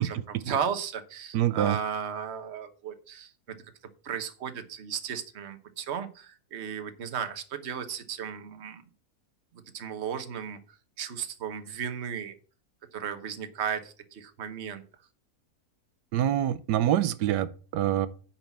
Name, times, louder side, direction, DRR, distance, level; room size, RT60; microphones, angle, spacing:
voice 1, 0.0-3.6 4.0-8.8 9.7-10.6 11.0-12.4 12.9-14.8, right 7 dB, 45° right, 8 dB, 1.2 m, -35 dB
voice 2, 1.3-1.8 16.1-18.1, right 11 dB, 85° right, 15 dB, 1.3 m, -26 dB
9.6 x 4.4 x 7.2 m, 0.38 s
omnidirectional pair, 1.7 m